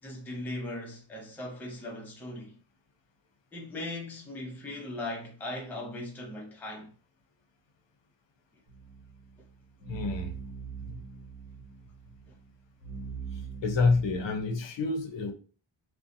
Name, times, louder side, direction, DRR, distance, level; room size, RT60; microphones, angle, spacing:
voice 1, 0.0-2.6 3.5-6.9 12.3-12.4, left 1 dB, 5° left, 0.4 m, -39 dB
sound 1, 8.7-14.4, right 6 dB, 55° right, 1.3 m, -42 dB
voice 2, 9.9-10.3 10.9-11.0 13.6-15.3, left 3 dB, 65° left, 0.6 m, -28 dB
2.6 x 2.1 x 2.5 m
wide cardioid pair, 170°, 49 cm